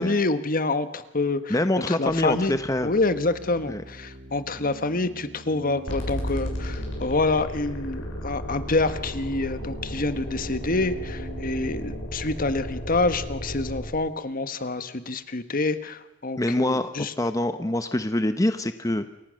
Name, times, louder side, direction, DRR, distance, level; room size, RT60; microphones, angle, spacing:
voice 1, 0.0-1.5 1.9-17.1, left 3 dB, 50° left, 11 dB, 1.4 m, -27 dB
voice 2, 1.5-2.9 3.7-3.8 16.4-16.9 17.2-19.1, left 1 dB, 20° left, 9 dB, 0.9 m, -25 dB
sound 1, 2.1-12.1, right 2 dB, 50° right, 1.8 m, -44 dB
sound 2, 5.9-13.9, left 1 dB, 90° left, 7.0 m, -34 dB
28.5 x 24.5 x 6.4 m, 0.97 s
head